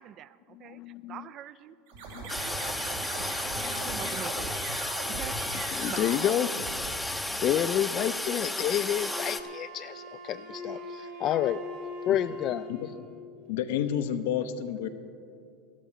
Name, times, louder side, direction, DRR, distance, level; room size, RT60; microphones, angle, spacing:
voice 1, 0.0-1.8 2.2-3.3 3.6-4.7 5.2-6.4, right 10 dB, 45° right, 16 dB, 0.4 m, -45 dB
voice 2, 0.5-1.3 2.1-2.2 3.4-4.0 5.1-5.2 5.7-6.5 7.4-11.6 12.1-12.7, left 11 dB, 45° left, 12 dB, 0.3 m, -30 dB
sound 1, 1.9-7.3, right 3 dB, 90° right, 3.8 m, -39 dB
Toilet flush, 2.3-9.4, left 1 dB, 5° left, 0.6 m, -33 dB
Wind instrument woodwind instrument, 9.0-13.1, left 2 dB, 60° right, 2.2 m, -41 dB
voice 3, 13.5-14.9, left 9 dB, 80° left, 8 dB, 0.8 m, -29 dB
12.5 x 12.0 x 5.7 m, 2.4 s
supercardioid pair, 120°, 0 cm